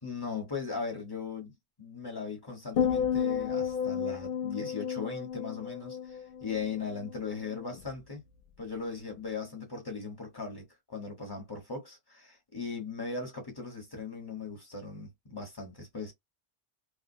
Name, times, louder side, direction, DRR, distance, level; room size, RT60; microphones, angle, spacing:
voice 1, 0.0-8.2 8.6-16.1, left 4 dB, 20° left, 1.1 m, -38 dB
sound 1, 2.8-7.1 7.4-7.9, left 8 dB, 60° left, 0.7 m, -32 dB
2.4 x 2.3 x 2.6 m
omnidirectional pair, 1.2 m